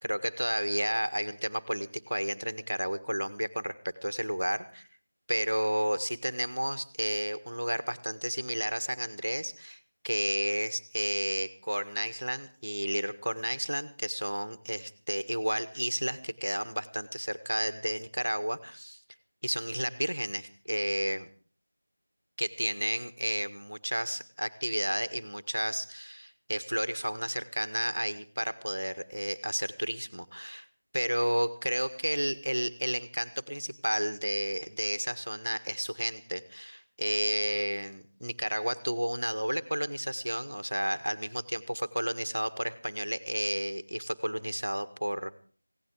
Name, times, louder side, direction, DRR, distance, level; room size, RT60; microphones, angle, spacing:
voice 1, 0.0-4.9 5.3-9.8 10.0-19.0 19.4-21.3 22.4-30.7 30.9-45.3, equal, 90° right, 12 dB, 1.6 m, -32 dB
17.0 x 16.5 x 4.8 m, 0.42 s
figure-of-eight pair, 170°, 0 cm